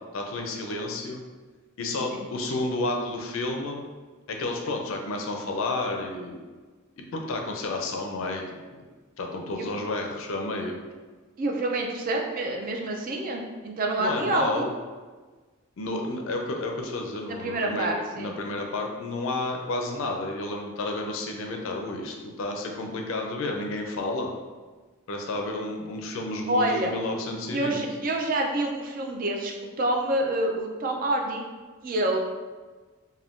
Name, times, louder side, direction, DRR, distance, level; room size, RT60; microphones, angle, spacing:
voice 1, 0.1-1.2 1.8-3.8 4.3-6.4 7.0-8.4 9.2-10.7 14.0-14.7 15.8-24.3 25.1-27.9, left 2 dB, 65° left, 2 dB, 0.4 m, -31 dB
voice 2, 11.4-14.7 17.3-18.4 26.5-26.9 27.5-29.5 29.8-31.4 31.8-32.2, right 1 dB, 40° right, 1 dB, 0.4 m, -27 dB
2.4 x 2.2 x 3.5 m, 1.3 s
head